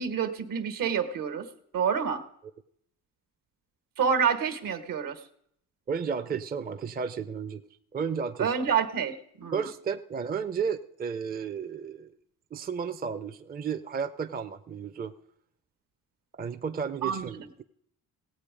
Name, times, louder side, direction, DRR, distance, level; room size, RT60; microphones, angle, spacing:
voice 1, 0.0-1.4 1.7-2.2 4.0-5.2 8.4-9.7 17.0-17.5, right 7 dB, 65° right, 9 dB, 1.5 m, -28 dB
voice 2, 5.9-7.6 7.9-8.5 9.5-12.1 12.5-15.1 16.4-17.6, right 6 dB, 25° right, 9 dB, 0.6 m, -33 dB
17.0 x 8.3 x 5.1 m, 0.70 s
cardioid pair, 80°, 35 cm